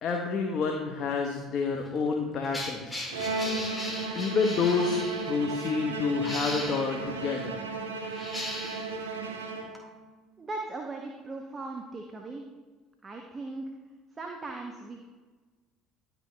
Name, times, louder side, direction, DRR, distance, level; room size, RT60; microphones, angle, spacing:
voice 1, 0.0-3.1 4.1-7.6, left 4 dB, 40° left, 2 dB, 1.0 m, -29 dB
sound 1, 1.8-5.3 6.1-6.9 8.0-9.0 9.7-9.8, left 1 dB, 10° left, 2.3 m, -38 dB
Bowed string instrument, 3.1-10.1, right 3 dB, 75° right, 0.9 m, -35 dB
voice 2, 10.4-12.4 13.0-13.7 14.1-15.0, right 3 dB, 25° right, 2 dB, 1.0 m, -38 dB
11.0 x 6.2 x 3.4 m, 1.4 s
figure-of-eight pair, 60°, 0 cm